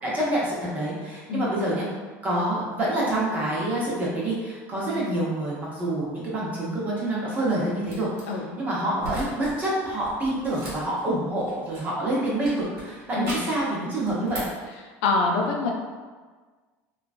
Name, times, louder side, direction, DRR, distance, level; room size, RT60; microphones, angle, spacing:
voice 1, 0.0-1.8 2.2-8.1 8.6-14.4, right 1 dB, 25° right, -6 dB, 0.9 m, -27 dB
sound 1, 7.9-8.2 9.0-9.6 9.9-12.0 12.4-13.6 14.0-14.6, right 1 dB, 55° right, 1.2 m, -38 dB
voice 2, 15.0-15.7, left 3 dB, 75° left, 1 dB, 0.5 m, -25 dB
2.9 x 2.4 x 2.5 m, 1.4 s
supercardioid pair, 135°, 6 cm